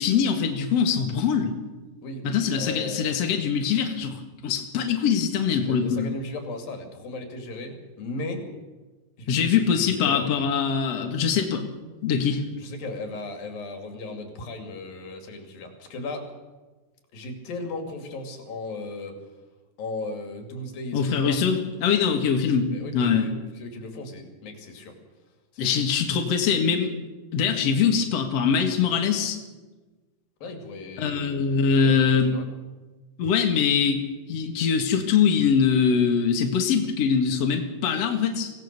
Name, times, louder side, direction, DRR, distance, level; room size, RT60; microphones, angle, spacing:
voice 1, 0.0-1.5 2.2-6.1 9.3-11.6 12.0-12.4 20.9-23.3 25.6-27.0 27.3-29.4 31.0-32.3 33.2-34.0 34.3-38.5, left 6 dB, 50° left, 3 dB, 2.8 m, -23 dB
voice 2, 2.0-3.2 5.5-8.5 9.2-10.5 12.6-16.3 17.1-19.1 19.8-21.4 22.7-24.9 25.5-25.8 30.4-32.5, left 2 dB, 90° left, 4 dB, 4.4 m, -37 dB
24.5 x 18.0 x 6.8 m, 1.2 s
omnidirectional pair, 4.0 m